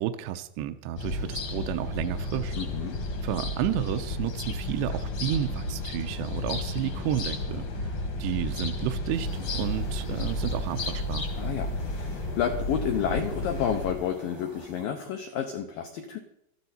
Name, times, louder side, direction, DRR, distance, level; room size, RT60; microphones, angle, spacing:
voice 1, 0.0-2.6 3.2-7.9 8.2-11.3, right 12 dB, 85° right, 7 dB, 2.5 m, -31 dB
sound 1, 1.0-13.9, left 2 dB, 55° left, 1.3 m, -32 dB
voice 2, 2.6-3.0 11.4-16.2, left 8 dB, 90° left, 5 dB, 2.0 m, -30 dB
sound 2, 9.1-14.9, right 1 dB, 25° right, 0.5 m, -51 dB
15.0 x 13.0 x 4.2 m, 0.77 s
omnidirectional pair, 5.4 m